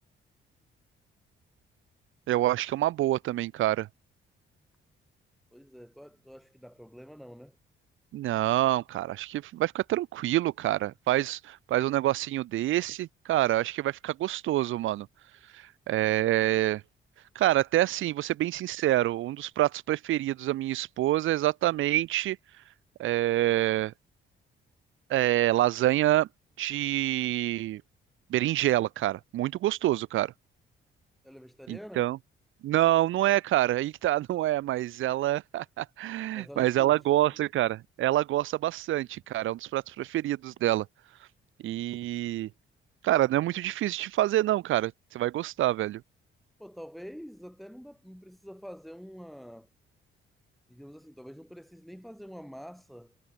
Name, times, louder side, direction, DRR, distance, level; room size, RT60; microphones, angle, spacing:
voice 1, 2.3-3.9 8.1-15.1 15.5-16.8 17.4-22.4 23.0-23.9 25.1-26.3 26.6-27.8 28.3-30.3 31.7-32.2 32.6-40.9 41.6-42.5 43.0-46.0, right 14 dB, 85° right, 2.2 m, -27 dB
voice 2, 5.5-7.6 31.2-32.1 36.3-37.4 46.6-49.7 50.7-53.1, equal, ahead, 4.6 m, -46 dB
cardioid pair, 90°, 20 cm